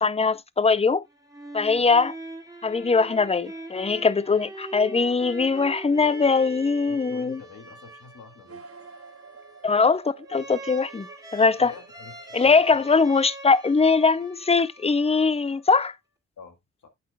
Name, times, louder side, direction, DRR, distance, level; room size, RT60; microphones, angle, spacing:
voice 1, 0.0-1.0 1.5-2.1 2.6-7.4 9.6-11.7 12.3-15.9, left 4 dB, 20° left, 0.5 m, -21 dB
sound 1, 1.1-15.7, right 2 dB, 10° right, 2.2 m, -43 dB
voice 2, 6.9-8.6 11.4-12.9 16.4-16.9, left 5 dB, 85° left, 2.1 m, -46 dB
sound 2, 8.4-13.3, right 5 dB, 50° right, 1.6 m, -49 dB
8.4 x 8.4 x 2.3 m
wide cardioid pair, 95°, 29 cm